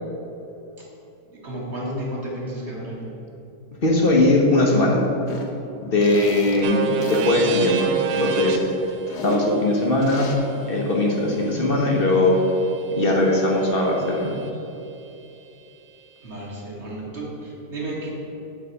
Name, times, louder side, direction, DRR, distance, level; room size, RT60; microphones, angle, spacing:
voice 1, 1.3-3.1 6.4-7.0 16.2-18.1, right 1 dB, 40° right, -4 dB, 1.9 m, -33 dB
voice 2, 3.8-5.0 5.8-7.9 8.2-8.6 9.2-10.3 10.7-12.3 13.0-14.3, left 1 dB, 40° left, -1 dB, 1.0 m, -19 dB
sound 1, 5.3-5.5 6.0-6.6 7.0-7.3 8.0-9.4 10.0-10.4, left 3 dB, 70° left, 1.4 m, -35 dB
sound 2, 6.6-14.5, right 6 dB, 70° right, 1.1 m, -32 dB
8.3 x 4.1 x 7.0 m, 2.9 s
omnidirectional pair, 1.9 m